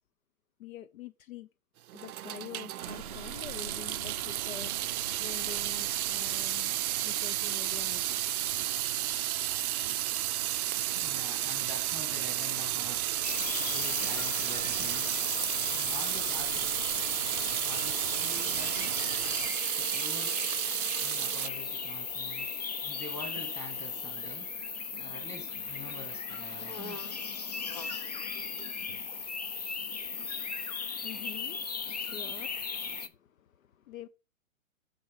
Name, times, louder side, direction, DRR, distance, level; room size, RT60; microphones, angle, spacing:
voice 1, 0.6-1.5 1.9-6.7 7.0-8.2 30.7-34.1, left 10 dB, 70° left, 0.7 m, -47 dB
Water tap faucet / Sink (filling or washing) / Drip, 1.9-21.5, right 13 dB, 85° right, 0.5 m, -32 dB
sound 1, 2.8-19.5, right 7 dB, 30° right, 0.4 m, -44 dB
voice 2, 10.9-13.0 13.7-15.2 15.7-16.7 17.6-18.9 19.8-20.3 21.0-22.5 22.8-24.5 25.0-27.0 28.3-28.7, left 1 dB, 5° left, 2.3 m, -46 dB
sound 2, 13.2-33.1, left 5 dB, 30° left, 0.4 m, -37 dB
7.0 x 6.3 x 5.7 m
hypercardioid pair, 165°, 42 cm